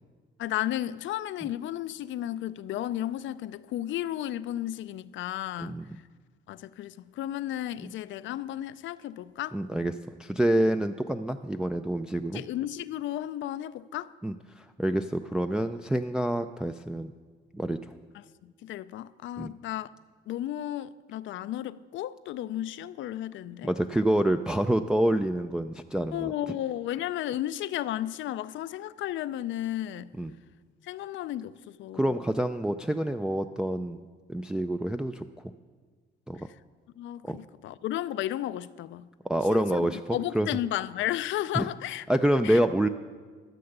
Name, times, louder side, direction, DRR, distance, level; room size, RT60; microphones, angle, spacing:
voice 1, 0.4-5.8 6.5-9.6 12.3-14.1 18.4-19.9 20.3-23.7 26.1-30.1 30.8-32.1 37.0-39.1 39.5-42.0 42.4-42.6, left 13 dB, 75° left, 0.4 m, -33 dB
voice 2, 9.5-9.9 10.2-12.4 14.2-17.1 17.5-17.9 19.4-19.5 23.6-26.3 30.1-30.3 31.9-35.3 36.3-36.5 37.2-37.4 39.2-40.5 41.5-41.7 42.1-42.9, right 1 dB, 5° right, 0.3 m, -27 dB
13.0 x 6.8 x 6.6 m
cardioid pair, 90°, 20 cm